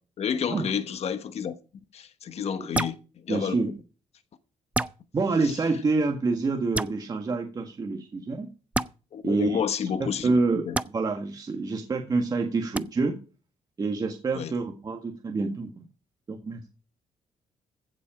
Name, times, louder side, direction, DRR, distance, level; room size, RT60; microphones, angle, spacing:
voice 1, 0.2-1.5 1.9-3.0 3.2-3.6 9.1-10.3 10.7-10.8 14.3-14.5, left 7 dB, 55° left, 1.2 m, -30 dB
sound 1, 2.7-3.0 4.7-5.0 6.7-6.9 8.7-8.9 10.7-10.9 12.7-12.8, right 2 dB, 10° right, 0.5 m, -27 dB
voice 2, 3.3-3.7 5.1-8.5 9.2-9.9 10.2-13.1 13.8-15.9 16.3-16.7, right 3 dB, 30° right, 1.7 m, -27 dB
15.5 x 7.6 x 5.0 m
cardioid pair, 125°, 13 cm